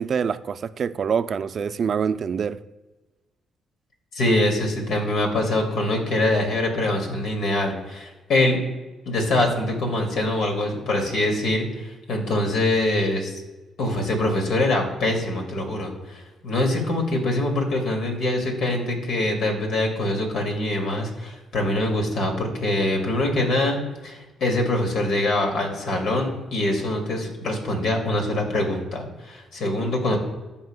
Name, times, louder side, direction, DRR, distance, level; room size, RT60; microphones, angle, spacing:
voice 1, 0.0-2.6, right 6 dB, 50° right, 12 dB, 0.4 m, -25 dB
voice 2, 4.1-8.6 9.1-13.4 13.8-23.8 24.0-30.2, left 1 dB, 75° left, 2 dB, 2.1 m, -24 dB
14.0 x 5.6 x 2.2 m, 1.1 s
cardioid pair, 90°, 0 cm